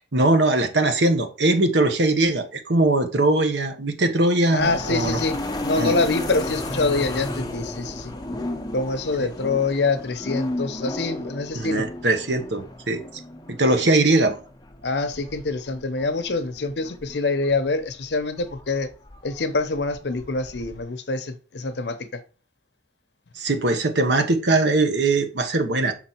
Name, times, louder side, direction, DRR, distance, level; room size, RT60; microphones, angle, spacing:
voice 1, 0.1-5.2 5.8-6.0 9.2-9.3 11.5-13.0 13.5-14.4 23.4-25.9, right 2 dB, 80° right, 1.2 m, -21 dB
voice 2, 4.5-5.4 5.6-8.1 8.7-11.8 14.8-18.9 19.2-22.2, left 3 dB, 75° left, 0.8 m, -25 dB
sound 1, 4.6-20.8, left 1 dB, 20° left, 0.8 m, -34 dB
6.0 x 4.1 x 4.4 m
head